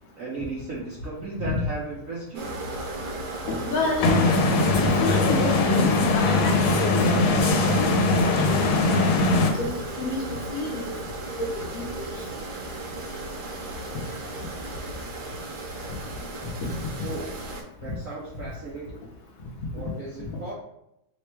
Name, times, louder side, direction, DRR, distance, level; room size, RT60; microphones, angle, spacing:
voice 1, 0.1-2.5 17.0-17.3 17.8-19.1 19.7-20.5, right 3 dB, 80° right, -5 dB, 0.7 m, -35 dB
sound 1, 2.3-17.6, right 2 dB, 65° right, 1.1 m, -35 dB
voice 2, 3.5-4.2 4.8-5.8 6.1-7.1 7.5-7.8 8.5-8.9 9.6-10.2 10.5-10.9 11.4-12.1 16.6-16.8, left 2 dB, 65° left, -3 dB, 0.9 m, -29 dB
sound 2, 4.0-9.5, left 3 dB, 85° left, 1.4 m, -21 dB
3.4 x 2.2 x 4.4 m, 0.82 s
omnidirectional pair, 2.3 m